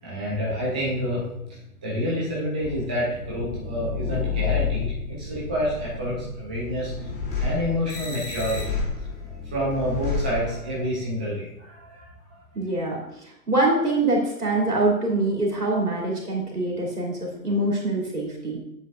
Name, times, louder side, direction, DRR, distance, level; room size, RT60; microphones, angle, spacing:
voice 1, 0.0-6.9 7.4-8.8 9.2-12.1, equal, 5° right, -6 dB, 0.3 m, -28 dB
sound 1, 2.6-11.0, left 5 dB, 20° left, 2.4 m, -31 dB
voice 2, 12.5-18.6, right 2 dB, 90° right, -2 dB, 2.8 m, -24 dB
9.4 x 7.4 x 2.5 m, 0.83 s
figure-of-eight pair, 110°, 45 cm